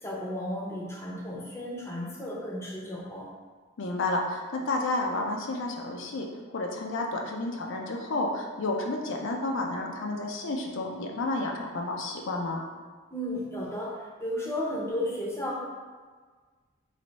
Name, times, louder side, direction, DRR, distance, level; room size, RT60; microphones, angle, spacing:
voice 1, 0.0-3.3 13.1-15.6, left 1 dB, 15° left, -3 dB, 0.6 m, -34 dB
voice 2, 3.8-12.6, left 2 dB, 60° left, 1 dB, 0.4 m, -31 dB
3.3 x 3.0 x 3.9 m, 1.5 s
head